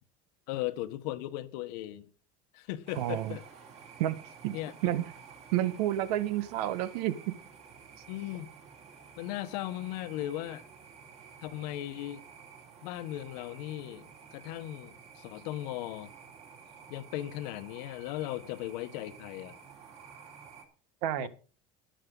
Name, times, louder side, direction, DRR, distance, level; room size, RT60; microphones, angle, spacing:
voice 1, 0.5-2.1 2.5-3.4 4.5-4.9 8.1-8.5 9.2-10.6 11.4-12.2 12.8-16.1 16.9-19.6 21.2-21.3, left 14 dB, 80° left, 1.3 m, -37 dB
sound 1, 2.9-20.6, right 6 dB, 30° right, 2.9 m, -52 dB
voice 2, 2.9-3.4 4.0-4.6 4.8-5.0 5.5-7.4 21.0-21.3, right 13 dB, 80° right, 1.4 m, -30 dB
13.0 x 10.5 x 3.9 m
cardioid pair, 170°, 20 cm